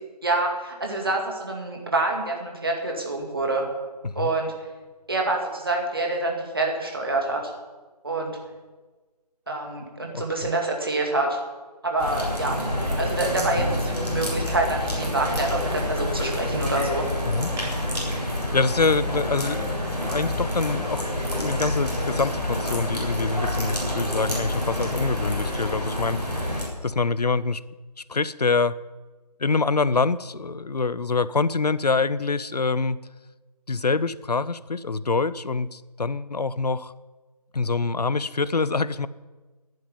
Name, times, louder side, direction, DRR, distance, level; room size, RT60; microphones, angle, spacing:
voice 1, 0.2-3.7 4.2-4.5 5.1-7.4 8.0-8.4 9.5-11.4 11.8-12.6 13.0-17.1, right 2 dB, 35° right, 1 dB, 2.2 m, -26 dB
sound 1, 12.0-26.6, left 1 dB, 5° right, 1.5 m, -28 dB
voice 2, 18.1-21.0 21.3-27.6 28.1-28.8 29.4-33.0 33.7-36.9 37.5-39.1, left 4 dB, 70° left, 17 dB, 0.7 m, -25 dB
11.0 x 9.3 x 9.1 m, 1.3 s
figure-of-eight pair, 175°, 21 cm